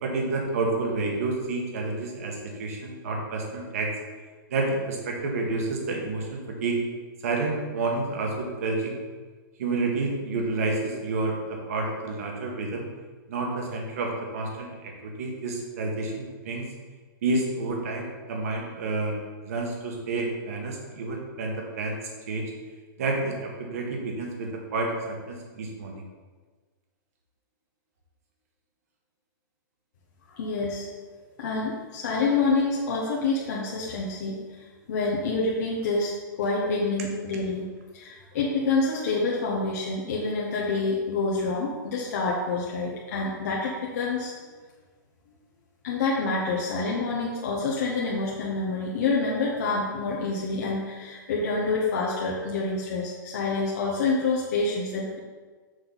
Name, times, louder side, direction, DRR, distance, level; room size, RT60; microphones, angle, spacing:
voice 1, 0.0-3.9 4.5-6.8 7.2-9.0 9.6-12.8 13.3-16.7 17.2-19.2 19.4-22.0 22.3-22.5 23.0-26.0, right 3 dB, 45° right, 0 dB, 1.4 m, -29 dB
voice 2, 30.3-30.9 31.4-34.4 34.9-36.1 36.4-37.7 37.9-44.5 45.8-55.2, left 3 dB, 45° left, -4 dB, 1.0 m, -27 dB
6.5 x 6.0 x 4.0 m, 1.4 s
hypercardioid pair, 180°, 11 cm